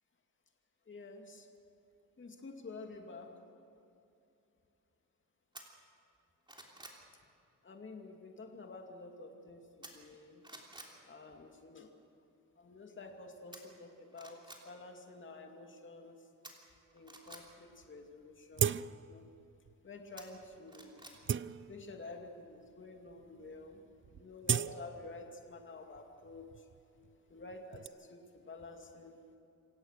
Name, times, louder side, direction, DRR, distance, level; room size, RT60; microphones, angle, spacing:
voice 1, 0.9-1.5 2.2-3.3 7.6-10.4 11.1-11.9 12.6-16.2 16.9-18.7 19.1-19.2 19.8-21.0 21.7-23.8 24.1-26.5 27.3-29.2, left 3 dB, 35° left, 3 dB, 2.5 m, -50 dB
sound 1, 5.5-5.7 6.2-7.0 9.8-10.2 10.4-10.9 13.5-13.6 14.1-14.6 16.4-17.4 20.2-21.2 21.5-21.6, right 1 dB, 15° right, 3.2 m, -51 dB
sound 2, 17.5-17.6 17.8-17.9 18.5-19.2 19.6-19.8 20.4-20.6 21.0-22.1 22.8-22.9 23.2-23.5 23.8-25.6 25.9-27.9, right 8 dB, 40° right, 0.4 m, -37 dB
27.5 x 16.5 x 6.6 m, 2.7 s
cardioid pair, 120°, 33 cm